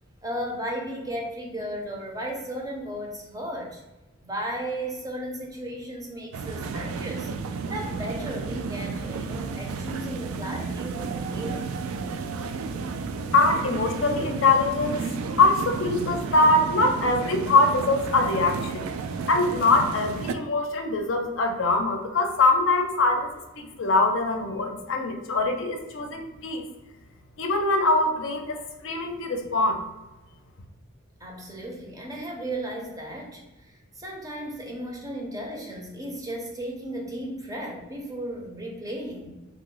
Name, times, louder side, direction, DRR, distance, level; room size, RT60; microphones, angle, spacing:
voice 1, 0.2-3.8 4.2-7.3 7.7-11.7 31.2-33.7 34.0-39.3, right 1 dB, 15° right, 0 dB, 0.5 m, -35 dB
sound 1, 6.3-20.3, right 4 dB, 90° right, 0.3 m, -32 dB
voice 2, 13.3-15.0 15.4-18.9 19.3-23.3 23.6-26.6 27.4-29.8, left 3 dB, 65° left, 4 dB, 0.5 m, -23 dB
2.8 x 2.0 x 3.7 m, 1.1 s
head